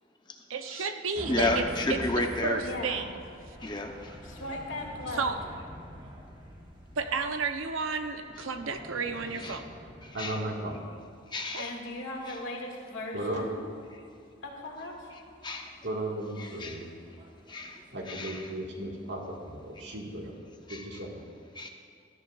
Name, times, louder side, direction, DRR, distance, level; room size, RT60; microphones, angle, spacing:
voice 1, 0.5-1.6 1.9-3.0 5.1-5.4 7.0-9.7 11.5-11.6, right 4 dB, 85° right, 7 dB, 0.7 m, -32 dB
sound 1, 1.1-20.3, equal, 25° right, 1.2 m, -47 dB
voice 2, 1.3-2.6 3.6-4.2 9.4-9.6 10.0-10.4 11.3-11.7 12.3-12.4 15.4-15.7 16.4-16.8 17.5-17.8 18.1-18.5 20.7-21.0 21.5-21.7, left 2 dB, 20° left, 3 dB, 0.8 m, -32 dB
voice 3, 2.6-3.1 4.2-5.3 11.6-13.6 14.4-15.1, left 2 dB, 75° left, -1 dB, 2.1 m, -38 dB
voice 4, 10.1-10.8 13.1-13.5 15.8-16.9 17.9-20.3 20.7-21.1, right 1 dB, 60° right, -1 dB, 1.9 m, -35 dB
17.5 x 13.0 x 2.4 m, 2.2 s
head